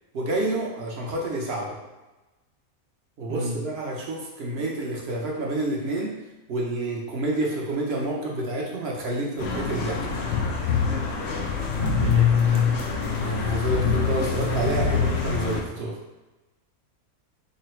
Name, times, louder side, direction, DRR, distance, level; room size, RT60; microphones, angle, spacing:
voice 1, 0.1-1.8 3.2-6.1 6.5-10.0 13.2-15.9, right 1 dB, 50° right, -2 dB, 0.9 m, -28 dB
voice 2, 3.3-3.6 11.7-12.7, right 2 dB, 75° right, -1 dB, 0.4 m, -34 dB
sound 1, 9.4-15.6, left 6 dB, 65° left, 0.7 m, -24 dB
3.9 x 2.2 x 4.3 m, 1.1 s
omnidirectional pair, 1.6 m